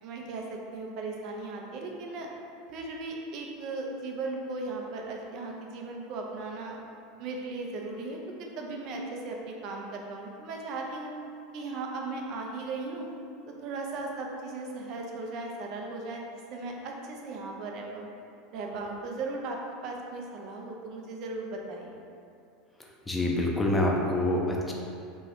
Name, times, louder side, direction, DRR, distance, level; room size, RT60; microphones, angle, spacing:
voice 1, 0.0-2.3 2.7-6.8 7.2-11.1 11.5-13.1 13.5-16.2 16.5-18.1 18.5-19.6 19.8-22.0, right 3 dB, 45° right, 0 dB, 0.6 m, -37 dB
voice 2, 23.1-24.7, left 1 dB, 10° left, -1 dB, 0.6 m, -26 dB
3.6 x 3.0 x 4.3 m, 2.5 s
figure-of-eight pair, 75°, 0 cm